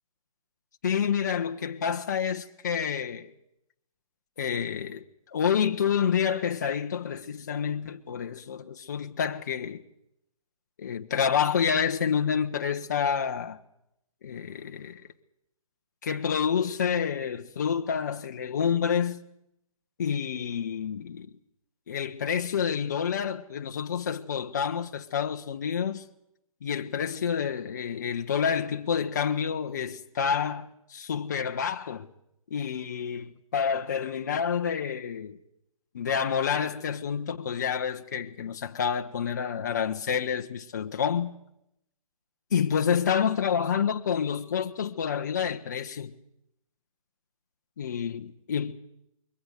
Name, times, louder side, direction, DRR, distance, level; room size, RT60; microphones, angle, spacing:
voice 1, 0.8-3.3 4.4-5.0 5.3-9.8 10.8-13.6 14.2-15.0 16.0-19.2 20.0-21.3 21.9-26.0 26.6-32.1 32.5-35.4 35.9-41.3 42.5-46.1 47.8-48.7, left 7 dB, 30° left, 1.0 m, -28 dB
22.5 x 17.5 x 8.1 m
hypercardioid pair, 170°, 18 cm